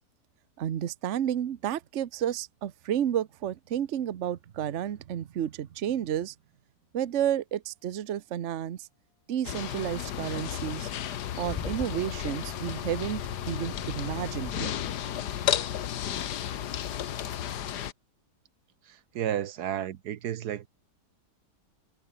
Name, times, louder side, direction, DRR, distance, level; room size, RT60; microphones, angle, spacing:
voice 1, 0.6-6.3 6.9-8.9 9.3-10.9 11.4-14.7, right 10 dB, 50° right, 1.0 m, -31 dB
sound 1, 9.4-17.9, left 10 dB, 80° left, 1.6 m, -33 dB
Car / Engine starting / Idling, 11.1-14.5, left 5 dB, 30° left, 0.7 m, -41 dB
voice 2, 18.9-20.7, right 10 dB, 75° right, 1.4 m, -32 dB
omnidirectional pair, 1.8 m